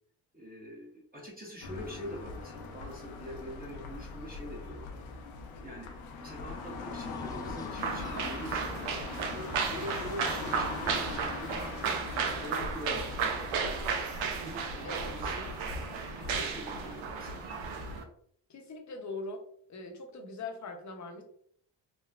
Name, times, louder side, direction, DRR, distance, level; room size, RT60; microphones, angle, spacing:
voice 1, 0.3-4.8 5.6-5.9 6.2-11.7 12.4-13.8 14.4-15.5 16.1-17.6, equal, 20° right, -4 dB, 1.0 m, -44 dB
sound 1, 1.6-18.0, left 3 dB, 75° left, 0.7 m, -41 dB
sound 2, 5.8-8.7, left 3 dB, 10° left, 0.4 m, -49 dB
sound 3, 7.8-18.0, right 6 dB, 80° right, 0.6 m, -34 dB
voice 2, 18.5-19.4 19.7-21.2, left 3 dB, 35° left, 3 dB, 0.7 m, -41 dB
3.1 x 2.1 x 2.3 m, 0.64 s
supercardioid pair, 60°, 48 cm